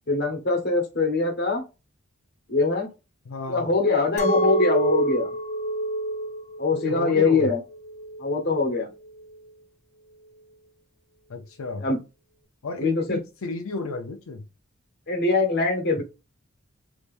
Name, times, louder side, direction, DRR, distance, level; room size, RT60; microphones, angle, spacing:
voice 1, 0.1-1.6 2.5-2.9 3.5-5.3 6.6-7.6 8.2-8.9 11.8-12.0 12.8-13.2 15.1-16.0, left 3 dB, 50° left, 1.1 m, -23 dB
voice 2, 3.3-3.7 6.7-7.5 11.3-11.9 12.6-14.4, left 3 dB, 80° left, 0.5 m, -33 dB
Chink clink, 4.2-9.4, right 1 dB, 35° left, 0.5 m, -28 dB
3.3 x 2.9 x 2.5 m
head